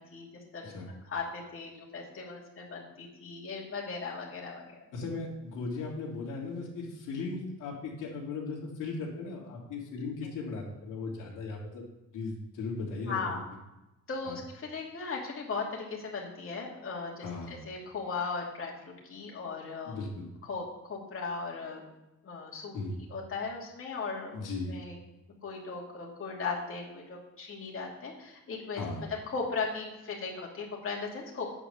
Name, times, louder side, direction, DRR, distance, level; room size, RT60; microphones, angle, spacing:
voice 1, 0.5-4.8 10.2-10.3 13.1-13.4 14.1-20.0 20.5-21.8 22.2-22.7 23.1-25.0 25.4-28.8 29.3-31.5, left 4 dB, 45° left, -3 dB, 2.7 m, -37 dB
voice 2, 4.9-11.8 12.1-13.4 14.2-14.4 17.2-17.6 19.8-20.3 22.7-23.0 24.3-24.7 28.8-29.1, left 3 dB, 85° left, -3 dB, 2.6 m, -37 dB
8.7 x 5.1 x 6.8 m, 0.97 s
cardioid pair, 90°, 30 cm